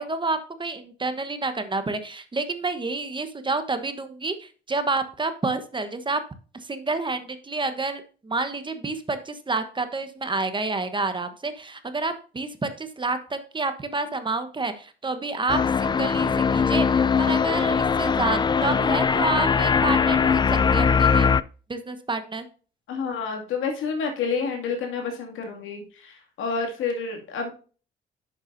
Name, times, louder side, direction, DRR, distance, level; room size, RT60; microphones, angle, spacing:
voice 1, 0.0-6.2 6.6-21.3 21.7-22.5, right 3 dB, 25° right, 9 dB, 1.1 m, -29 dB
sound 1, 15.5-21.4, left 6 dB, 20° left, 0.3 m, -21 dB
voice 2, 22.9-27.5, left 5 dB, 85° left, 2 dB, 2.3 m, -29 dB
10.5 x 7.2 x 2.7 m, 0.38 s
cardioid pair, 90°, 20 cm